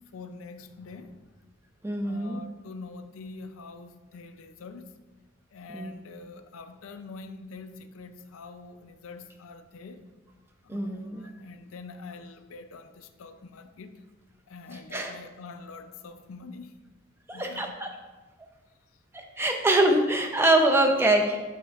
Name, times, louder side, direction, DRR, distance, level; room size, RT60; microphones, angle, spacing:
voice 1, 0.1-1.3 2.0-4.9 5.5-10.0 10.6-14.0 14.5-16.7 17.3-17.8, left 4 dB, 80° left, 9 dB, 0.4 m, -45 dB
voice 2, 1.8-2.4 5.7-5.9 10.7-11.3 14.7-15.1 17.3-17.9 19.1-21.4, right 1 dB, 10° right, 4 dB, 0.5 m, -24 dB
12.0 x 4.3 x 2.4 m, 1.3 s
head